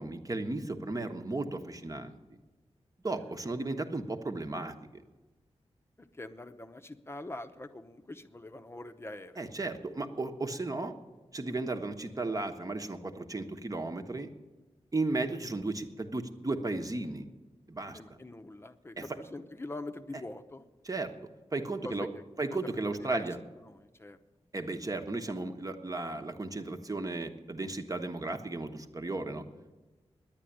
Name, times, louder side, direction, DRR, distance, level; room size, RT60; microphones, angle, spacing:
voice 1, 0.0-2.2 3.0-5.0 9.4-11.0 11.3-14.3 14.9-17.3 17.7-18.0 19.0-19.2 20.8-21.1 21.5-22.1 22.4-23.4 24.5-29.4, right 2 dB, 30° right, 6 dB, 1.2 m, -35 dB
voice 2, 6.2-9.4 17.9-20.6 21.8-22.1 23.1-23.2 23.7-24.2, left 2 dB, 20° left, 8 dB, 0.8 m, -44 dB
10.5 x 9.1 x 10.0 m, 1.2 s
wide cardioid pair, 70°, 11 cm